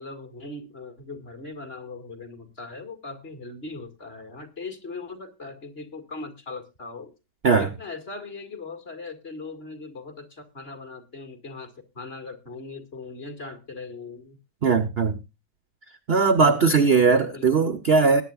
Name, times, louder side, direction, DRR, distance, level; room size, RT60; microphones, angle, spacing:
voice 1, 0.0-7.1 7.6-14.4 17.3-17.7, left 3 dB, 30° left, 2.3 m, -39 dB
voice 2, 14.6-15.2 16.1-18.2, right 4 dB, 50° right, 0.7 m, -19 dB
20.0 x 9.4 x 2.4 m
omnidirectional pair, 2.2 m